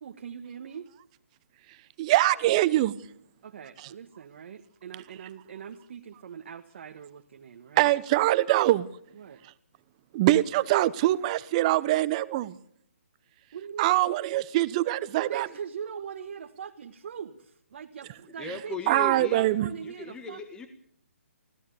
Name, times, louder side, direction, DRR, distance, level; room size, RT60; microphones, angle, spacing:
voice 1, 0.0-0.9 3.4-7.9 9.1-9.4 13.5-14.2 15.2-20.4, right 7 dB, 50° right, 4 dB, 1.5 m, -41 dB
voice 2, 2.0-3.0 7.8-8.9 10.1-12.6 13.8-15.5 18.9-19.7, right 16 dB, 30° right, 17 dB, 0.9 m, -23 dB
voice 3, 18.4-19.4 19.8-20.7, left 3 dB, 10° left, 7 dB, 1.5 m, -37 dB
24.0 x 16.5 x 7.0 m, 0.66 s
figure-of-eight pair, 145°, 8 cm